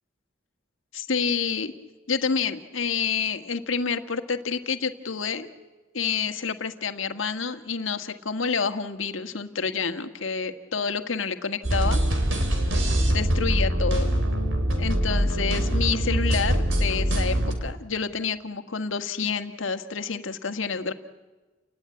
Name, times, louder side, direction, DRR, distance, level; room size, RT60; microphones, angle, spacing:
voice 1, 0.9-1.7 2.1-5.5 5.9-12.0 13.1-14.1 14.8-17.3 17.6-20.9, left 5 dB, 85° left, 8 dB, 1.6 m, -28 dB
sound 1, 11.6-17.5, equal, 80° right, 3.6 m, -23 dB
30.0 x 19.0 x 9.6 m, 1.2 s
head